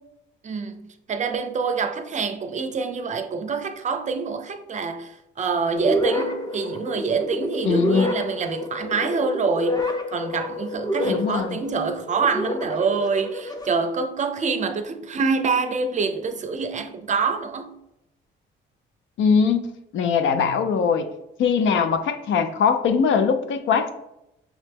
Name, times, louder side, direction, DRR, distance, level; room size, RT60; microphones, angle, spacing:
voice 1, 0.4-9.8 10.1-17.7, right 5 dB, 35° right, 0.5 m, -26 dB
sound 1, 5.8-13.7, left 1 dB, 20° left, 0.7 m, -28 dB
voice 2, 7.6-8.1 11.0-11.6 19.2-19.7 19.9-21.1 21.4-23.9, left 6 dB, 75° left, 0.5 m, -21 dB
5.9 x 2.1 x 3.3 m
cardioid pair, 90°, 20 cm